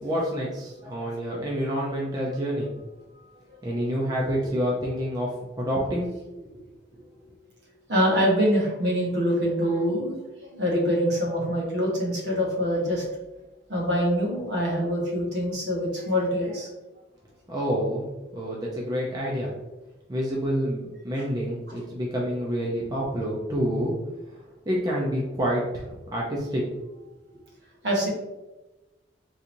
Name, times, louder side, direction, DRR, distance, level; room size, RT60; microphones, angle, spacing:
voice 1, 0.0-2.7 3.6-5.3 5.6-6.1 17.5-18.1 18.3-19.5 20.1-23.9 24.3-24.4 24.7-26.6, equal, 20° right, -4 dB, 0.5 m, -28 dB
voice 2, 0.8-1.1 7.9-10.1 10.4-13.0 13.7-16.7 27.8-28.1, equal, 65° right, -3 dB, 1.2 m, -25 dB
3.8 x 2.9 x 2.6 m, 1.1 s
head